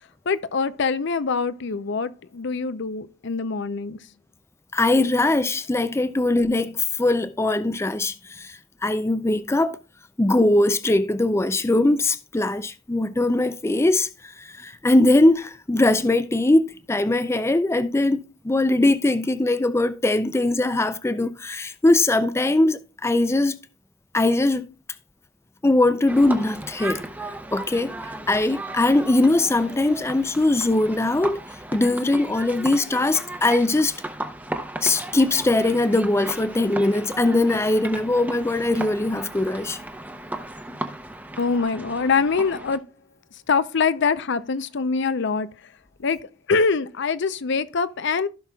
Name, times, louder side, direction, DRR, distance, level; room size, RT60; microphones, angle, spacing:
voice 1, 0.3-4.0 41.4-42.8 43.5-45.5 46.0-46.2 46.5-48.3, left 5 dB, 65° left, 0.6 m, -24 dB
voice 2, 4.7-9.8 10.2-23.6 24.1-24.7 25.6-27.0 27.5-27.9 28.3-31.4 31.7-33.9 34.8-39.8, left 2 dB, 15° left, 0.4 m, -21 dB
sound 1, 26.1-42.8, right 1 dB, 10° right, 0.8 m, -36 dB
15.5 x 5.9 x 2.3 m
head